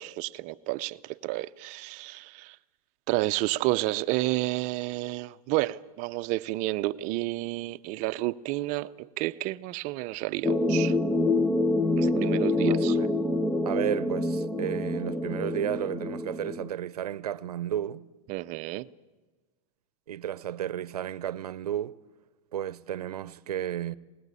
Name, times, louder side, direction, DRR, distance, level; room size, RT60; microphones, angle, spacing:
voice 1, 0.0-2.6 3.1-11.0 12.0-13.0 18.3-18.9, right 18 dB, 40° right, 0.7 m, -30 dB
sound 1, 10.4-16.7, left 2 dB, 5° left, 0.7 m, -26 dB
voice 2, 12.6-13.1 13.6-18.1 20.1-22.0 22.5-24.0, right 11 dB, 85° right, 0.8 m, -33 dB
21.0 x 19.0 x 8.4 m
hypercardioid pair, 125°, 19 cm